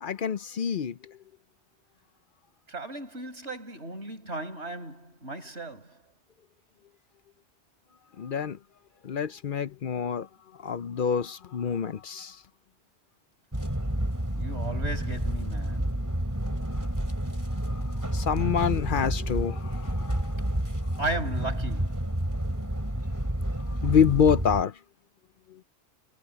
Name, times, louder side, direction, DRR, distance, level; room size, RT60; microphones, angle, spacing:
voice 1, 0.0-1.2 8.2-8.6 9.0-10.3 10.6-12.4 17.7-20.4 23.6-24.8 25.5-25.6, left 7 dB, 55° left, 0.7 m, -27 dB
voice 2, 2.7-6.0 14.3-15.9 21.0-22.1, right 2 dB, 70° right, 5.9 m, -35 dB
sound 1, 13.5-24.6, right 1 dB, 15° right, 3.3 m, -30 dB
omnidirectional pair, 1.2 m